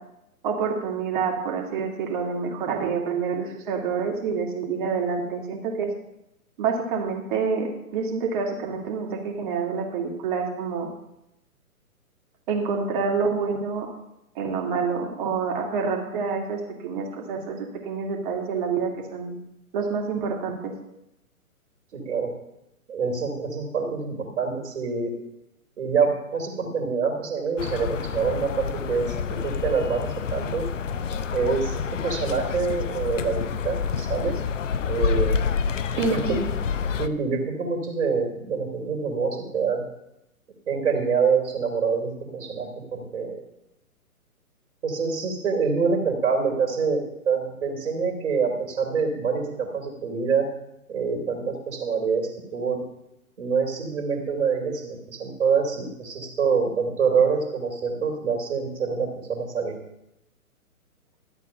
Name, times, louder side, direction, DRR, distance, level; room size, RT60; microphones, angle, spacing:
voice 1, 0.4-5.9 6.6-10.9 12.5-13.9 14.3-19.4 19.7-20.7 36.0-36.5, right 5 dB, 35° right, 0 dB, 2.5 m, -27 dB
voice 2, 21.9-22.3 22.9-25.1 25.8-30.7 31.3-34.4 34.8-35.4 35.9-36.2 37.0-39.8 40.7-43.4 44.8-50.5 50.9-52.8 53.4-59.8, right 5 dB, 55° right, 0 dB, 3.0 m, -26 dB
sound 1, 27.6-37.1, left 6 dB, 55° left, 0.8 m, -28 dB
12.5 x 8.2 x 5.6 m, 0.87 s
figure-of-eight pair, 130°, 44 cm